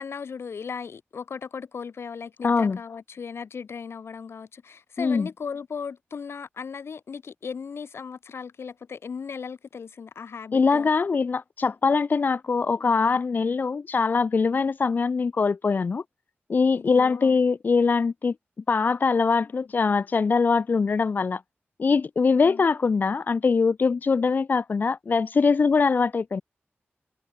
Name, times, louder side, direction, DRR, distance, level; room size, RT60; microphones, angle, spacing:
voice 1, 0.0-10.9 16.7-17.4 22.4-22.6, left 6 dB, 80° left, 1.6 m, -37 dB
voice 2, 2.4-2.8 5.0-5.3 10.5-16.0 16.5-18.3 18.7-21.4 21.8-26.4, left 4 dB, 50° left, 0.3 m, -22 dB
wide cardioid pair, 120°, 4 cm